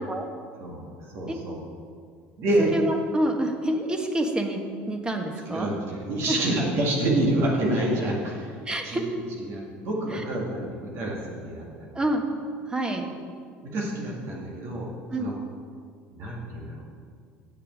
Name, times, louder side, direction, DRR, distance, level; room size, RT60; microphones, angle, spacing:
voice 1, 0.6-1.6 2.4-2.7 5.5-8.6 8.8-9.1 9.4-12.0 13.6-14.9 15.2-15.3 16.1-16.8, right 1 dB, 60° right, -3 dB, 2.0 m, -28 dB
voice 2, 2.6-4.6 4.9-5.7 6.3-6.4 8.7-9.0 10.1-10.2 11.9-12.2 12.7-13.1 15.1-15.3, right 1 dB, 15° right, 4 dB, 1.3 m, -27 dB
8.2 x 6.5 x 7.5 m, 2.1 s
supercardioid pair, 100°, 5 cm